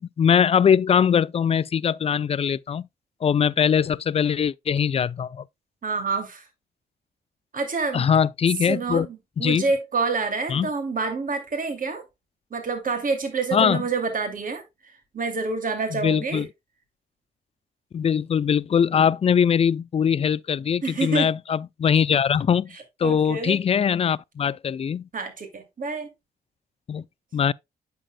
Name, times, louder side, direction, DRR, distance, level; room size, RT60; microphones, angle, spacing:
voice 1, 0.0-2.9 3.2-5.4 7.9-9.1 9.4-9.7 10.5-10.7 13.5-13.8 15.9-16.5 17.9-22.7 23.0-25.1 26.9-27.0 27.3-27.5, left 7 dB, 35° left, 0.4 m, -21 dB
voice 2, 5.8-6.5 7.5-8.0 8.6-12.0 12.5-16.5 20.8-21.3 22.7-23.6 25.1-26.1, right 4 dB, 45° right, 2.5 m, -28 dB
8.7 x 6.8 x 2.2 m
supercardioid pair, 55°, 19 cm